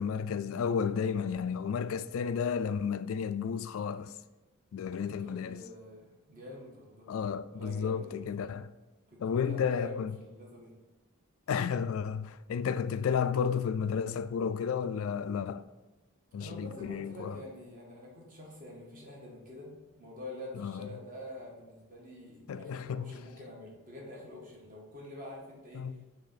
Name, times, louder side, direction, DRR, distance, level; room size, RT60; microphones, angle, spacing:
voice 1, 0.0-4.1 4.7-5.6 7.1-8.7 9.2-10.1 11.5-15.6 16.3-17.4 20.5-20.9 22.5-23.1 25.7-25.9, left 6 dB, 65° left, 0.3 m, -32 dB
voice 2, 4.8-7.1 7.4-8.3 9.1-10.8 16.4-26.0, left 1 dB, 40° right, 1.7 m, -47 dB
6.8 x 3.5 x 5.7 m
head